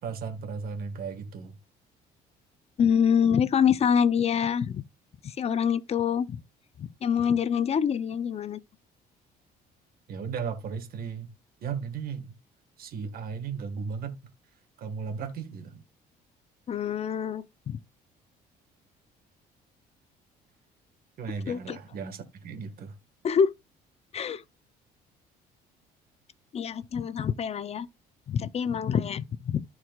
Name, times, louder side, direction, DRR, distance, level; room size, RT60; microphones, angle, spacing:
voice 1, 0.0-1.5 10.1-11.3 11.6-12.3 12.8-14.2 14.8-15.8 21.2-23.0, right 6 dB, 60° right, 1.7 m, -35 dB
voice 2, 2.8-4.8 5.2-6.4 6.8-8.6 16.7-17.8 21.5-21.8 23.2-23.5 24.1-24.4 26.5-27.9 28.3-29.6, left 7 dB, 40° left, 0.6 m, -26 dB
14.0 x 4.8 x 2.4 m
cardioid pair, 110°, 17 cm